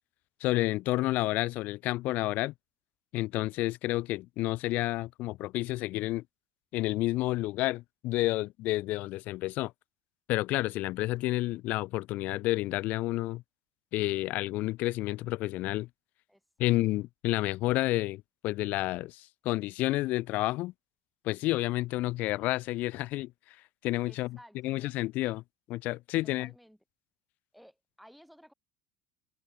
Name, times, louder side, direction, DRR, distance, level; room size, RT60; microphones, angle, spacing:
voice 1, 0.4-2.5 3.1-6.2 6.7-9.7 10.3-13.4 13.9-15.9 16.6-20.7 21.2-23.3 23.8-24.4 24.6-25.4 25.7-26.5, left 18 dB, 60° left, 0.5 m, -30 dB
voice 2, 16.3-16.7 24.0-25.0 26.4-26.8 27.5-28.5, equal, ahead, 2.4 m, -56 dB
open air
supercardioid pair, 110°, 3 cm